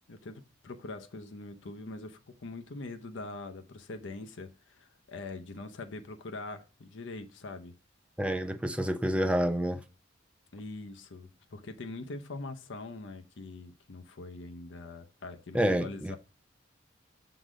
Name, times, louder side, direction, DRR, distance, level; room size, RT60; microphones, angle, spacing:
voice 1, 0.1-7.7 10.5-16.2, left 3 dB, 70° left, 0.6 m, -43 dB
voice 2, 8.2-9.8 15.5-16.1, equal, 5° right, 0.4 m, -28 dB
6.2 x 3.9 x 4.9 m
head